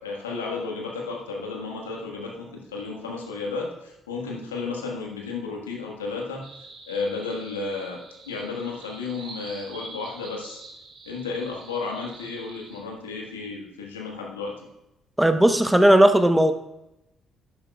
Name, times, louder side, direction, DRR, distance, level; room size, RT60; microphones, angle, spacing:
voice 1, 0.0-6.4 6.9-10.6 11.1-14.7, left 4 dB, 85° left, -1 dB, 1.5 m, -33 dB
sound 1, 6.4-12.8, right 3 dB, 60° right, 2.0 m, -45 dB
voice 2, 15.2-16.5, right 1 dB, 5° right, 8 dB, 0.9 m, -16 dB
12.0 x 10.5 x 2.3 m, 0.90 s
hypercardioid pair, 45°, 0 cm